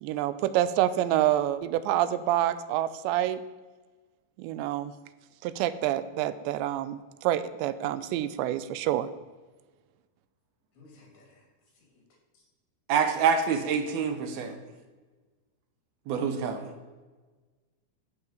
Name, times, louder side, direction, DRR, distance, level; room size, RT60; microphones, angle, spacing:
voice 1, 0.0-3.4 4.4-4.9 5.4-9.1, right 12 dB, 85° right, 14 dB, 2.9 m, -27 dB
voice 2, 10.7-11.5 11.8-12.0, left 2 dB, 70° left, 0 dB, 5.4 m, -56 dB
voice 3, 12.9-14.6 16.1-16.7, right 6 dB, 70° right, 7 dB, 2.7 m, -26 dB
14.5 x 5.8 x 6.8 m, 1.3 s
omnidirectional pair, 5.1 m